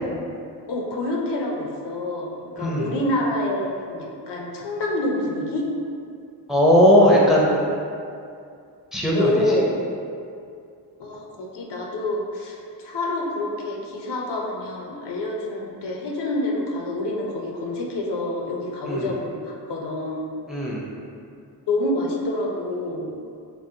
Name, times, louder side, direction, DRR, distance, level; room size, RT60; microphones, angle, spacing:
voice 1, 0.7-5.6 9.1-9.7 11.0-20.3 21.7-23.1, left 1 dB, 70° left, -1 dB, 0.6 m, -27 dB
voice 2, 2.6-2.9 6.5-7.6 8.9-9.6 18.8-19.0 20.5-20.8, equal, ahead, -4 dB, 0.5 m, -18 dB
3.8 x 2.0 x 2.7 m, 2.5 s
cardioid pair, 65°, 43 cm